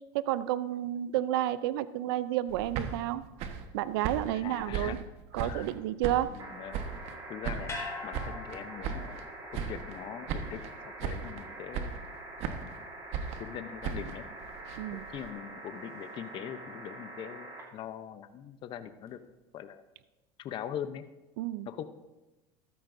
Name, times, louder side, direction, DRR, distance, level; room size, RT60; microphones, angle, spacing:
voice 1, 0.1-3.2 3.7-5.0 5.3-6.3 14.8-15.1 21.4-21.7, right 13 dB, 80° right, 15 dB, 0.5 m, -31 dB
sound 1, 2.5-5.8 6.0-7.2 7.4-9.3 9.5-10.0 10.3-10.7 11.0-11.4 11.7-12.8 13.1-15.3, right 7 dB, 60° right, 1.2 m, -37 dB
voice 2, 4.3-5.0 5.3-5.7 6.2-6.8 7.3-7.7 8.0-9.2 9.5-10.6 11.0-12.0 13.4-14.3 14.9-19.2 19.5-19.8 20.4-21.0 21.7-21.8, left 9 dB, 45° left, 10 dB, 0.7 m, -41 dB
sound 2, 6.4-17.6 19.1-19.2, right 2 dB, 30° right, 3.0 m, -45 dB
sound 3, 7.7-12.0 12.3-12.4, left 3 dB, 25° left, 4.1 m, -44 dB
14.0 x 12.5 x 2.6 m, 1.0 s
supercardioid pair, 110°, 12 cm